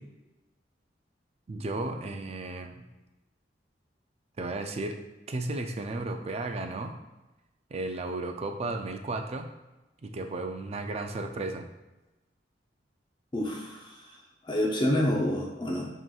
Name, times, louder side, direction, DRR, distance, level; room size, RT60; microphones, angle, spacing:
voice 1, 1.5-2.8 4.4-5.0 5.3-6.9 7.7-9.5 10.0-11.7, right 2 dB, 35° right, 5 dB, 0.4 m, -34 dB
voice 2, 13.3-14.0 14.5-15.8, left 1 dB, 25° left, -2 dB, 0.6 m, -28 dB
7.6 x 3.0 x 2.3 m, 1.1 s
head